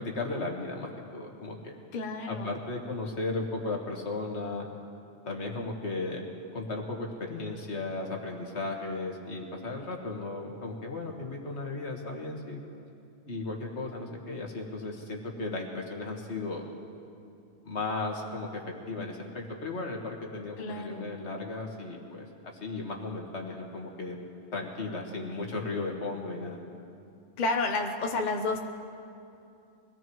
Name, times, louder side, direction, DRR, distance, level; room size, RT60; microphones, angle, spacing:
voice 1, 0.0-1.7 2.3-4.7 5.3-6.2 6.5-12.6 13.3-16.7 17.6-24.2 24.5-26.6, left 3 dB, 70° left, 1 dB, 1.9 m, -35 dB
voice 2, 1.9-2.5 20.6-21.1 27.4-28.7, left 3 dB, 45° left, 3 dB, 0.9 m, -30 dB
23.5 x 17.5 x 3.1 m, 2.6 s
omnidirectional pair, 1.2 m